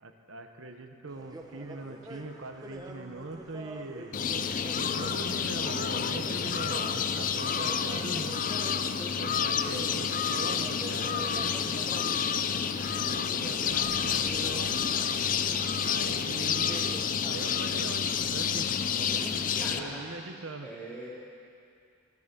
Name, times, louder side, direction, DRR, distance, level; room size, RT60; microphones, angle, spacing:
voice 1, 0.0-4.2 4.6-8.3 9.1-11.7 13.0-14.8 15.8-17.0 17.2-18.8 19.7-20.7, right 2 dB, 65° right, 5 dB, 1.0 m, -42 dB
sound 1, 1.1-20.0, right 1 dB, 15° right, 0.9 m, -45 dB
sound 2, 4.1-19.8, left 7 dB, 40° left, 0.4 m, -29 dB
voice 2, 4.9-5.4 9.5-10.0 19.5-20.3 20.6-21.1, right 1 dB, 5° left, -8 dB, 3.0 m, -44 dB
sound 3, 10.9-19.7, left 1 dB, 90° left, 2.8 m, -55 dB
15.0 x 10.5 x 6.8 m, 2.5 s
head